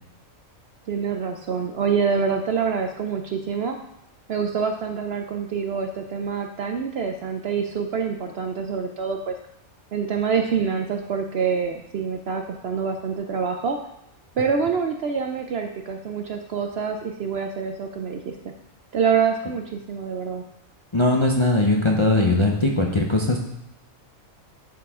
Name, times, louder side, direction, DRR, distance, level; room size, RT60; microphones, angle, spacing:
voice 1, 0.9-3.8 4.3-9.3 9.9-13.8 14.4-18.3 18.9-20.4, right 6 dB, 65° right, 5 dB, 0.7 m, -26 dB
voice 2, 20.9-23.4, left 2 dB, 30° left, 0 dB, 0.5 m, -20 dB
10.5 x 4.7 x 3.6 m, 0.83 s
omnidirectional pair, 1.4 m